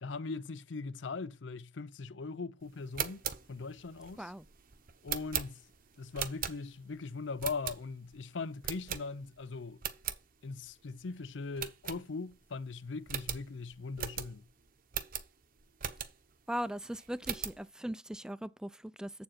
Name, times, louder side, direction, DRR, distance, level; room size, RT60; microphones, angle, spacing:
voice 1, 0.0-3.2 3.5-4.3 5.0-5.6 6.0-9.8 10.4-14.5, left 4 dB, 70° left, 0.6 m, -40 dB
sound 1, 2.8-6.9 7.4-8.1 8.6-9.4 9.7-10.2 10.7-10.8 11.0-11.1 11.6-12.5 12.7-12.8 13.1-16.4 16.8-17.6, right 9 dB, 50° right, 0.8 m, -39 dB
voice 2, 16.5-19.1, equal, 5° right, 0.4 m, -39 dB
7.6 x 7.1 x 4.3 m
head